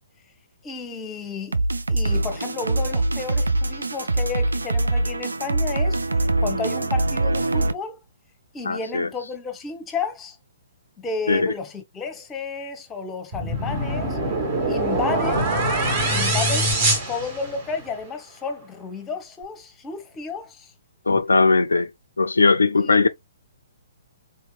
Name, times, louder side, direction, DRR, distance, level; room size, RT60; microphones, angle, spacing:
voice 1, 0.6-1.6 1.9-6.0 6.4-8.0 8.5-10.4 11.0-14.2 14.7-15.5 16.1-16.7 17.1-20.7 22.8-23.0, left 5 dB, 15° left, 0.9 m, -32 dB
sound 1, 1.5-7.7, right 2 dB, 75° right, 0.4 m, -23 dB
voice 2, 8.7-9.1 11.3-11.5 21.1-21.9 22.2-23.1, left 3 dB, 75° left, 0.3 m, -19 dB
sound 2, 13.3-17.9, right 1 dB, 40° right, 1.5 m, -23 dB
4.0 x 2.8 x 2.2 m
figure-of-eight pair, 125°, 0 cm